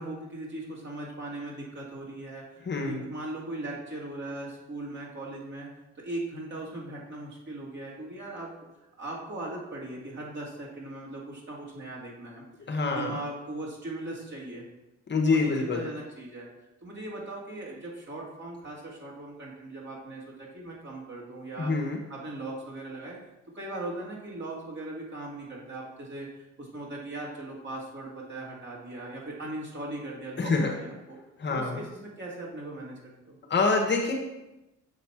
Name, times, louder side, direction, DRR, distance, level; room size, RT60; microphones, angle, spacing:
voice 1, 0.0-5.7 6.0-8.6 9.0-12.4 12.8-14.6 15.2-16.5 16.8-21.8 22.1-23.2 23.5-31.2 31.5-33.4, right 2 dB, 40° right, -5 dB, 2.5 m, -39 dB
voice 2, 2.6-3.0 12.7-13.2 15.1-15.9 21.6-22.0 30.4-30.7 31.4-31.8 33.5-34.1, left 3 dB, 35° left, 1 dB, 1.1 m, -26 dB
7.2 x 3.1 x 5.8 m, 0.97 s
cardioid pair, 90°, 30 cm